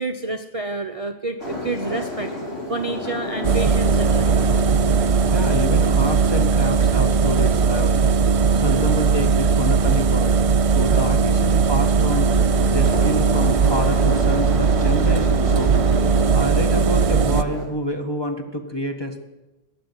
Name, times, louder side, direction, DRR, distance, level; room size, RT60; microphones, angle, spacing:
voice 1, 0.0-2.3 2.7-4.4, right 3 dB, 35° right, 4 dB, 0.7 m, -29 dB
sound 1, 1.4-17.7, left 2 dB, 85° left, 4.2 m, -33 dB
Engine, 3.4-17.4, right 5 dB, 65° right, 0.3 m, -18 dB
voice 2, 5.3-8.1 8.5-10.4 10.7-12.3 12.7-15.7 16.3-19.1, left 1 dB, 20° left, 4 dB, 1.4 m, -28 dB
16.5 x 6.9 x 9.7 m, 1.1 s
omnidirectional pair, 1.2 m